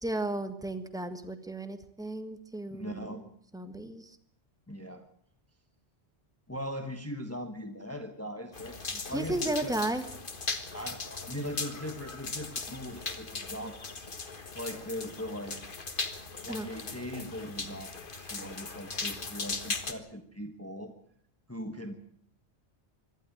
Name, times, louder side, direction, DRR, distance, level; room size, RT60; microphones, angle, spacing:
voice 1, 0.0-3.1 3.5-4.1 9.1-10.0 16.5-16.7, right 1 dB, 5° right, 9 dB, 1.6 m, -34 dB
voice 2, 2.7-3.2 4.7-5.0 6.5-9.7 10.7-14.1 14.5-15.6 16.4-20.9 21.5-21.9, equal, 15° left, 6 dB, 1.4 m, -40 dB
sound 1, 8.5-19.9, left 4 dB, 50° left, 1.7 m, -38 dB
25.0 x 12.0 x 8.7 m, 0.65 s
omnidirectional pair, 1.1 m